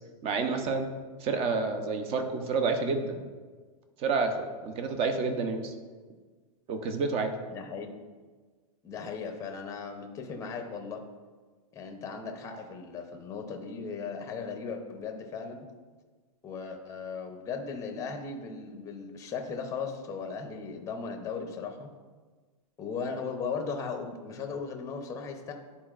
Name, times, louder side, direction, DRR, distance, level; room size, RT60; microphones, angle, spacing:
voice 1, 0.2-0.9 1.2-3.2 4.0-5.7 6.7-7.4, right 4 dB, 30° right, 7 dB, 0.8 m, -29 dB
voice 2, 7.5-8.0 8.8-11.0 11.7-15.7 16.4-21.9 22.8-25.5, left 5 dB, 15° left, 4 dB, 0.7 m, -37 dB
11.0 x 4.2 x 2.5 m, 1.4 s
hypercardioid pair, 135°, 20 cm